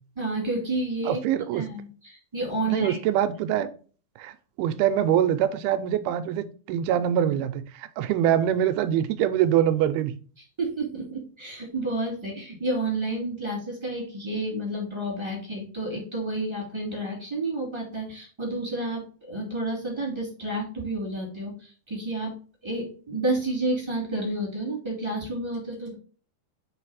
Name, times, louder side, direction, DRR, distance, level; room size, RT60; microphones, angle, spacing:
voice 1, 0.1-1.2 1.5-3.0 10.6-22.3 22.6-25.9, right 2 dB, 20° right, 0.8 m, -30 dB
voice 2, 1.0-1.6 2.7-3.7 4.2-10.1, right 10 dB, 85° right, 2.4 m, -24 dB
7.3 x 3.2 x 4.7 m
omnidirectional pair, 4.4 m